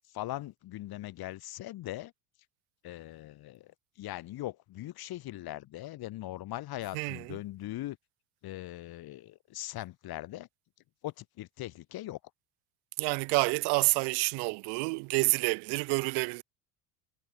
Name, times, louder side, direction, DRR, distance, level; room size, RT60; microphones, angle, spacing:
voice 1, 0.1-2.1 2.8-3.7 4.0-8.0 8.4-10.5 11.0-12.2, left 15 dB, 50° left, 3.9 m, -40 dB
voice 2, 6.9-7.4 13.0-16.4, right 32 dB, 55° right, 0.9 m, -28 dB
hypercardioid pair, 75°, 48 cm